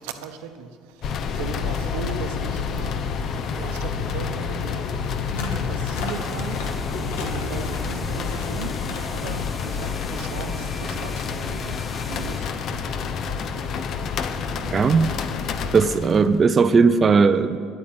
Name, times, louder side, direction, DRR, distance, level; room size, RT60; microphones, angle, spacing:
voice 1, 0.0-3.0 3.5-8.8 9.0-13.5 14.5-14.9, right 6 dB, 90° right, 8 dB, 1.0 m, -38 dB
sound 1, 1.0-16.3, left 6 dB, 50° left, 0.8 m, -28 dB
sound 2, 5.4-5.6 5.9-6.7 7.1-7.9 8.2-8.5 8.9-9.2, left 5 dB, 85° left, 1.5 m, -36 dB
sound 3, 5.9-12.4, left 2 dB, 20° left, 0.8 m, -40 dB
voice 2, 14.7-15.1 15.7-17.6, right 5 dB, 30° right, 10 dB, 0.5 m, -17 dB
9.8 x 8.7 x 9.4 m, 2.2 s
cardioid pair, 115°, 0 cm